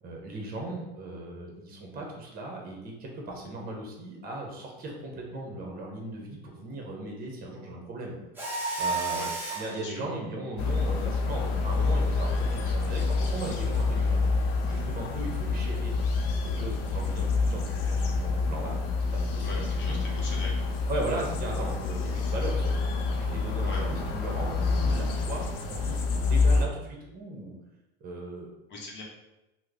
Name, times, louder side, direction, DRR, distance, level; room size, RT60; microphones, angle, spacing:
voice 1, 0.0-8.1 8.8-9.3 9.6-14.2 14.6-18.8 19.1-20.0 20.9-22.9 23.3-27.6 28.0-28.5, right 2 dB, 30° right, 0 dB, 0.9 m, -37 dB
Mechanisms, 8.4-9.8, right 3 dB, 5° right, 0.7 m, -31 dB
sound 1, 10.6-26.7, left 4 dB, 70° left, 0.6 m, -27 dB
voice 2, 19.4-20.9 23.6-24.0 28.7-29.0, left 2 dB, 40° left, -1 dB, 0.8 m, -41 dB
3.0 x 2.1 x 3.7 m, 0.97 s
supercardioid pair, 120°, 30 cm